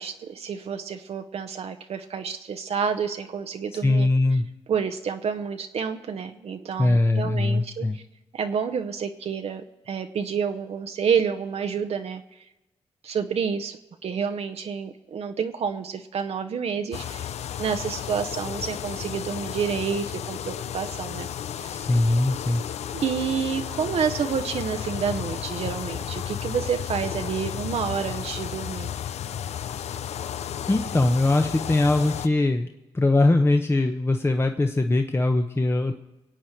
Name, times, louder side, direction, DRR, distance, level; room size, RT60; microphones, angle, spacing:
voice 1, 0.0-4.1 4.7-8.0 8.3-12.2 13.0-13.8 14.0-17.3 17.6-21.3 21.6-21.8 23.0-28.9, right 6 dB, 65° right, 6 dB, 0.8 m, -29 dB
voice 2, 3.8-4.5 6.8-8.0 21.7-22.6 30.7-32.7 32.9-35.9, left 2 dB, 20° left, 5 dB, 0.9 m, -21 dB
sound 1, 16.9-32.3, left 9 dB, 75° left, 0.5 m, -33 dB
22.5 x 8.3 x 4.5 m, 1.0 s
cardioid pair, 60°, 11 cm